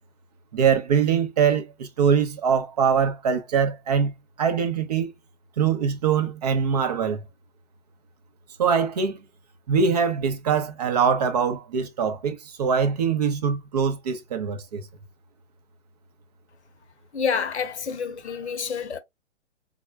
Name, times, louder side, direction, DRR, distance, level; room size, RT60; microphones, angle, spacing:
voice 1, 0.5-4.1 4.4-5.1 5.6-7.2 8.6-9.2 9.7-14.9, right 6 dB, 35° right, 0.5 m, -23 dB
voice 2, 17.1-19.0, left 6 dB, 70° left, 0.7 m, -28 dB
3.5 x 2.1 x 2.3 m
figure-of-eight pair, 120°, 36 cm